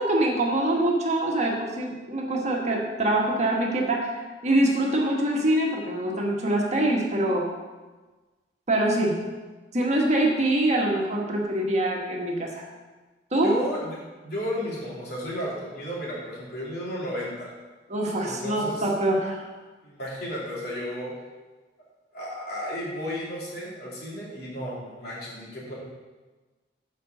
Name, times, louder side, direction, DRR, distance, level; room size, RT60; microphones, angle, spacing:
voice 1, 0.0-7.5 8.7-9.2 9.7-12.7 13.3-13.6 17.9-19.4, right 1 dB, 40° right, -1 dB, 1.4 m, -24 dB
voice 2, 13.4-14.0 14.2-17.5 18.2-18.9 19.8-21.1 22.1-25.8, equal, 60° left, -6 dB, 3.0 m, -33 dB
7.5 x 5.2 x 6.6 m, 1.3 s
head